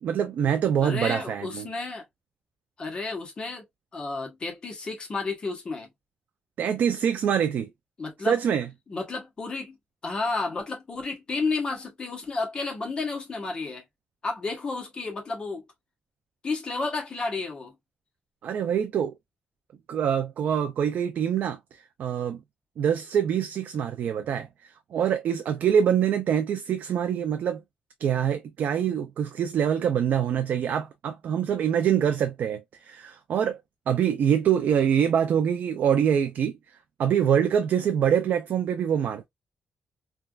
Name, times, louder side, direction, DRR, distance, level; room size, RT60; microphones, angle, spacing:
voice 1, 0.0-1.7 6.6-7.7 8.2-8.7 18.4-19.1 19.9-22.4 22.8-27.6 28.0-33.6 33.9-36.5 37.0-39.2, right 8 dB, 70° right, 0.4 m, -25 dB
voice 2, 0.8-2.1 2.8-3.6 3.9-5.9 8.0-8.4 8.9-9.8 10.0-13.8 14.2-15.6 16.4-17.8, left 3 dB, 30° left, 1.0 m, -31 dB
3.3 x 2.4 x 2.3 m
wide cardioid pair, 170°, 3 cm